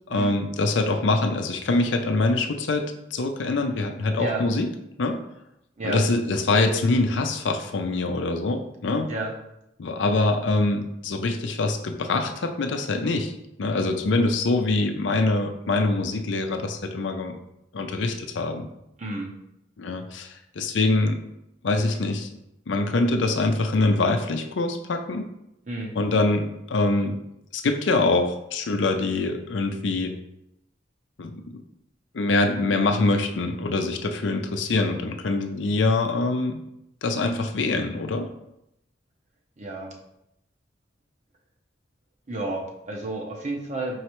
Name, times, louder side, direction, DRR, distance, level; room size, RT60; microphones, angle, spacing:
voice 1, 0.1-4.7 5.0-5.2 5.8-9.1 9.8-13.3 13.6-17.3 17.7-18.7 19.8-21.2 21.6-22.3 22.7-25.3 26.0-27.2 27.5-30.2 31.2-31.4 32.1-36.6 37.0-38.3, left 2 dB, 80° left, 6 dB, 0.5 m, -24 dB
voice 2, 19.0-19.3 25.7-25.9 39.6-39.9 42.3-44.0, right 2 dB, 40° right, 0 dB, 0.6 m, -31 dB
4.7 x 3.2 x 3.0 m, 0.83 s
head